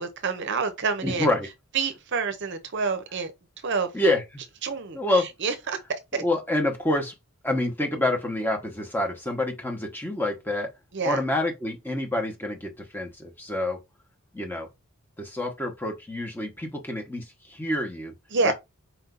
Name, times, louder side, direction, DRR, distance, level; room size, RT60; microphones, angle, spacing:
voice 1, 0.0-1.3 1.7-3.3 3.6-3.9 4.6-5.0 5.4-5.8 6.1-6.2 10.9-11.2 18.3-18.5, right 5 dB, 50° right, 0.7 m, -27 dB
voice 2, 1.0-1.5 3.9-4.2 4.9-5.3 6.1-7.1 7.4-10.7 11.0-13.8 14.3-14.7 15.2-18.1 18.4-18.5, left 1 dB, 10° left, 1.0 m, -27 dB
4.4 x 2.7 x 3.8 m
head